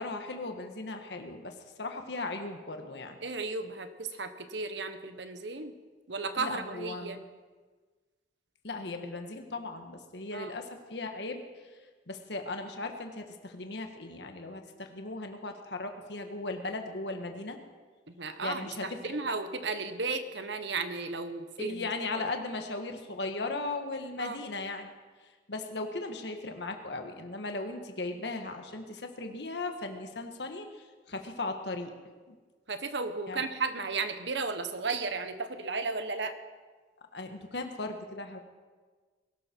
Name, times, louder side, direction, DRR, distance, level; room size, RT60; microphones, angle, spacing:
voice 1, 0.0-3.1 6.3-7.2 8.6-11.4 12.1-17.6 18.4-19.2 21.6-24.9 25.5-30.6 31.1-31.9 33.3-33.5 37.1-38.4, left 2 dB, 70° left, 5 dB, 1.5 m, -37 dB
voice 2, 3.2-5.7 6.1-7.2 10.3-10.5 18.1-21.9 22.1-22.2 24.2-24.4 32.7-36.3, right 4 dB, 80° right, 9 dB, 1.2 m, -34 dB
21.5 x 12.5 x 4.5 m, 1.4 s
head